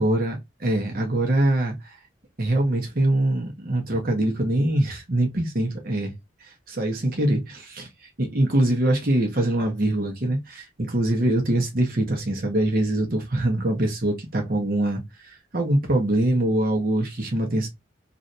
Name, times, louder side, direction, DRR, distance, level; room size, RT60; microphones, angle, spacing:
voice 1, 0.0-2.0 2.4-6.1 6.4-7.9 8.2-17.7, right 1 dB, 50° right, 1.0 m, -23 dB
3.2 x 2.6 x 2.6 m
head